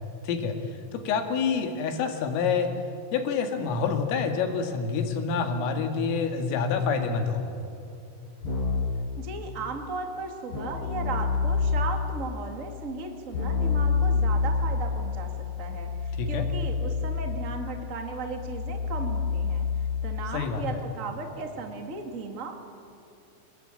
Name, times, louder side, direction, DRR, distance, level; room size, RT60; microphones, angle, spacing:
voice 1, 0.9-2.7 3.1-7.4 16.2-16.4 20.3-20.6, left 5 dB, 85° left, 5 dB, 4.7 m, -27 dB
Keyboard (musical), 8.4-9.1 10.5-12.1 13.3-20.4, left 4 dB, 25° left, 6.7 m, -28 dB
voice 2, 9.2-15.3 15.6-19.7 20.0-22.6, right 4 dB, 90° right, 4 dB, 0.7 m, -36 dB
28.5 x 21.5 x 9.2 m, 2.6 s
omnidirectional pair, 5.8 m